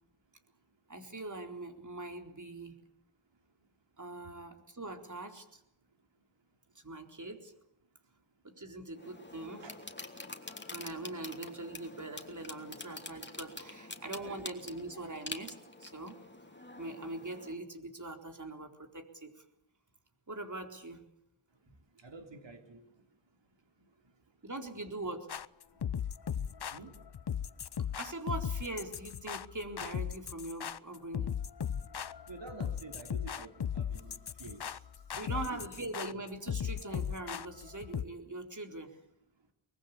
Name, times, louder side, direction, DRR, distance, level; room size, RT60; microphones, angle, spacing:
voice 1, 0.9-2.8 4.0-5.6 6.8-7.5 8.4-9.6 10.7-16.2 16.8-19.3 20.3-21.0 24.4-25.3 28.0-31.3 35.2-39.0, right 2 dB, 35° right, 5 dB, 4.1 m, -42 dB
sound 1, 9.0-17.6, left 2 dB, 20° left, 2.9 m, -46 dB
voice 2, 22.0-22.8 26.7-26.9 32.3-34.8 35.3-35.7 36.1-36.2, right 3 dB, 65° right, 5 dB, 3.5 m, -49 dB
sound 2, 25.3-38.0, left 8 dB, 55° left, 0.9 m, -37 dB
23.5 x 20.5 x 8.6 m, 0.79 s
cardioid pair, 60°, 48 cm